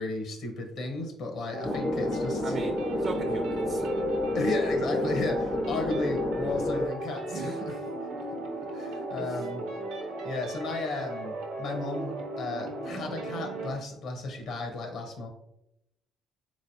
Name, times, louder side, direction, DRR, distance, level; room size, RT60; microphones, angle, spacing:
voice 1, 0.0-2.5 4.3-7.7 8.7-9.7 10.2-15.3, left 2 dB, 70° left, 4 dB, 0.9 m, -34 dB
sound 1, 1.5-13.7, right 2 dB, 80° right, 0.8 m, -35 dB
sound 2, 1.6-6.9, left 2 dB, 20° left, 0.4 m, -30 dB
voice 2, 2.4-2.7 3.0-3.9 7.3-7.6 9.2-9.4, right 4 dB, 50° right, 4 dB, 0.5 m, -36 dB
3.9 x 3.1 x 2.7 m, 0.84 s
supercardioid pair, 65°, 0 cm